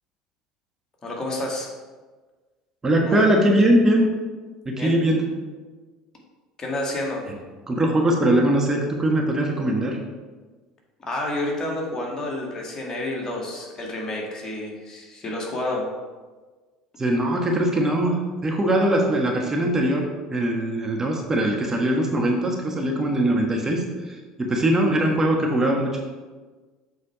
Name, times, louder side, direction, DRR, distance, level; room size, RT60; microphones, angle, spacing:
voice 1, 1.0-1.7 3.0-3.3 4.8-5.0 6.6-7.2 11.0-15.9, left 1 dB, 30° left, -1 dB, 2.0 m, -29 dB
voice 2, 2.8-4.0 4.6-5.2 7.7-10.0 17.0-26.0, right 1 dB, 25° right, 1 dB, 1.2 m, -21 dB
7.6 x 4.2 x 4.8 m, 1.3 s
hypercardioid pair, 70°, 2 cm